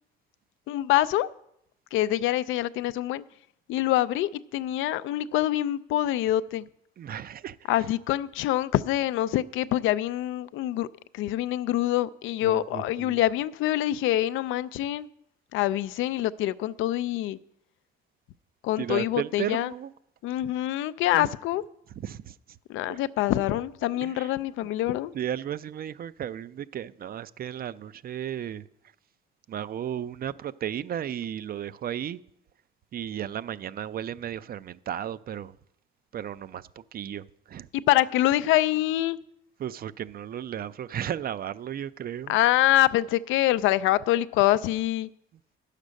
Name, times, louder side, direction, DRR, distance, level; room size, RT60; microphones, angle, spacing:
voice 1, 0.7-1.3 1.9-3.2 3.7-6.6 7.7-10.9 11.1-15.1 15.5-17.4 18.6-19.7 20.2-21.6 22.7-25.1 37.7-39.2 42.3-45.1, left 14 dB, 90° left, 0.4 m, -25 dB
voice 2, 7.0-7.6 12.4-13.2 18.8-19.9 21.1-21.3 22.0-22.3 22.9-23.0 24.0-24.3 25.1-28.6 29.5-32.2 32.9-35.5 36.1-37.7 39.6-42.4, right 10 dB, 50° right, 0.4 m, -34 dB
9.5 x 6.6 x 6.3 m
cardioid pair, 90°, 20 cm